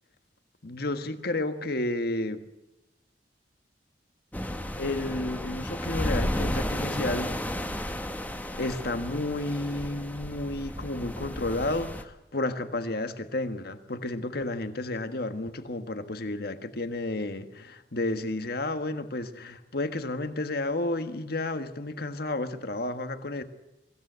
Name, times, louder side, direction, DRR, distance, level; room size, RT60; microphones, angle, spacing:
voice 1, 0.6-2.4 4.7-7.3 8.6-23.4, left 2 dB, 60° left, 9 dB, 1.5 m, -31 dB
sound 1, 4.3-12.0, equal, 10° left, 1.3 m, -33 dB
23.5 x 16.0 x 8.1 m, 0.95 s
head